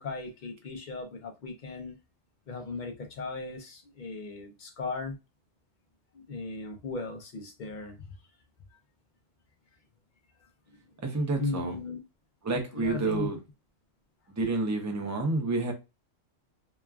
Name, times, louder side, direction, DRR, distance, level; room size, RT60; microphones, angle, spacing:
voice 1, 0.0-1.9 2.5-5.2 6.1-8.1 11.4-12.0 12.7-13.3, left 3 dB, 55° left, 0.5 m, -37 dB
voice 2, 11.0-11.8 12.4-13.4 14.3-15.7, right 3 dB, 30° right, 0.3 m, -29 dB
2.9 x 2.3 x 2.3 m
omnidirectional pair, 1.3 m